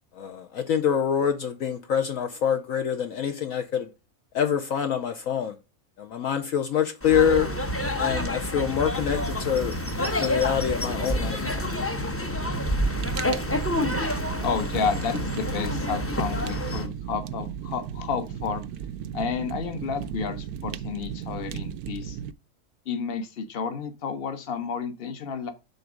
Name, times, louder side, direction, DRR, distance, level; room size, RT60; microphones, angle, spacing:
voice 1, 0.1-3.9 4.3-5.6 6.0-7.5 8.0-9.7 10.2-11.7, left 8 dB, 65° left, 1.1 m, -25 dB
sound 1, 7.0-16.9, left 1 dB, 15° left, 0.6 m, -28 dB
Fire, 12.5-22.3, right 9 dB, 75° right, 1.0 m, -35 dB
voice 2, 14.0-18.6 19.1-22.2 22.9-25.5, left 6 dB, 45° left, 1.2 m, -31 dB
7.0 x 3.9 x 6.3 m
omnidirectional pair, 1.6 m